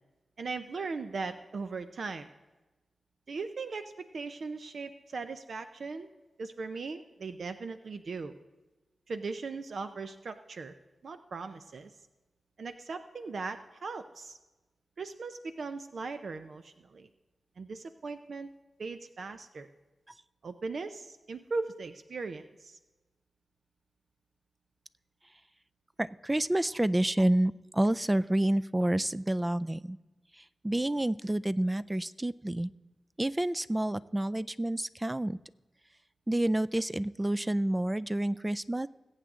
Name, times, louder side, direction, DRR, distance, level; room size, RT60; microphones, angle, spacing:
voice 1, 0.4-2.3 3.3-6.1 6.4-8.4 9.1-10.7 11.0-11.9 12.6-14.4 15.0-17.1 17.6-18.5 18.8-19.7 20.4-22.8, right 4 dB, 70° right, 9 dB, 0.6 m, -38 dB
voice 2, 26.0-30.0 30.4-32.7 33.2-35.4 36.3-38.9, right 1 dB, 15° right, 15 dB, 0.4 m, -29 dB
21.0 x 8.1 x 3.7 m, 1.1 s
cardioid pair, 65°, 0 cm